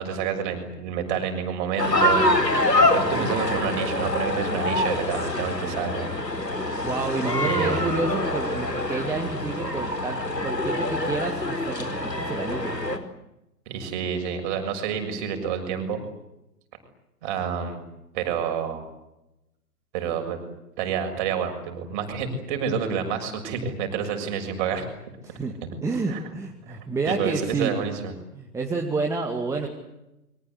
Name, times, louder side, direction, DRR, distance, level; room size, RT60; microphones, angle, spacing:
voice 1, 0.0-2.3 2.9-6.1 7.4-7.8 13.7-16.0 17.2-17.8 18.1-18.9 19.9-20.4 20.8-24.9 26.1-26.2 26.7-26.8 27.0-28.1, right 7 dB, 30° right, 6 dB, 6.8 m, -28 dB
sound 1, 1.8-13.0, left 1 dB, 85° left, 4.7 m, -25 dB
voice 2, 6.8-12.7 25.2-25.5 25.8-27.7 28.3-29.7, right 3 dB, 5° right, 2 dB, 2.2 m, -29 dB
29.0 x 24.5 x 8.1 m, 0.91 s
figure-of-eight pair, 125°, 48 cm